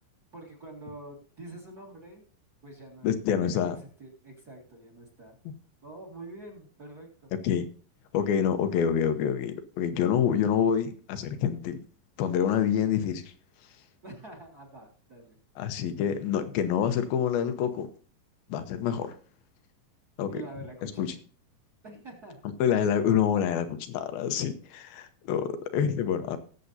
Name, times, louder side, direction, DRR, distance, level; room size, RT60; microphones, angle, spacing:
voice 1, 0.3-2.3 2.6-3.7 4.0-5.4 5.8-7.3 14.0-15.4 20.2-21.1 21.8-22.4, right 2 dB, 30° right, -1 dB, 2.2 m, -46 dB
voice 2, 3.0-3.8 5.5-5.6 7.4-7.7 8.1-11.8 12.2-13.3 15.6-17.9 18.5-19.1 20.2-20.4 20.8-21.2 22.6-26.4, left 8 dB, 85° left, 9 dB, 2.8 m, -27 dB
19.5 x 7.8 x 2.7 m, 0.41 s
omnidirectional pair, 4.1 m